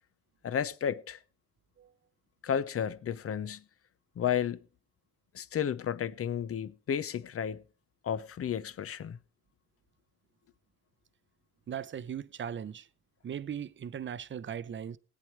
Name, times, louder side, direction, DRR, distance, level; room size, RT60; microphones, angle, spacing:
voice 1, 0.4-1.2 2.4-3.6 4.2-4.6 5.3-7.6 8.0-9.2, left 8 dB, 50° left, 0.9 m, -32 dB
voice 2, 11.7-12.9 13.2-15.0, right 8 dB, 40° right, 0.7 m, -38 dB
17.0 x 9.3 x 4.7 m
cardioid pair, 90°, 30 cm